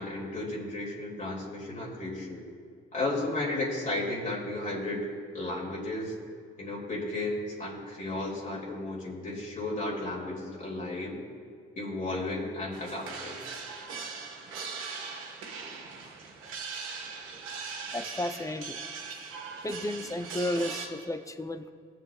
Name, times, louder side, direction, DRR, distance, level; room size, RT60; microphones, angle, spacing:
voice 1, 0.0-2.4 2.9-5.1 5.3-6.1 6.6-11.2 11.8-13.4, left 2 dB, 40° left, -4 dB, 2.7 m, -34 dB
sound 1, 12.7-20.9, right 5 dB, 90° right, 1.6 m, -40 dB
voice 2, 17.9-18.8 19.6-21.7, left 1 dB, 15° left, 9 dB, 0.6 m, -33 dB
19.0 x 7.8 x 2.4 m, 2.3 s
cardioid pair, 90°, 20 cm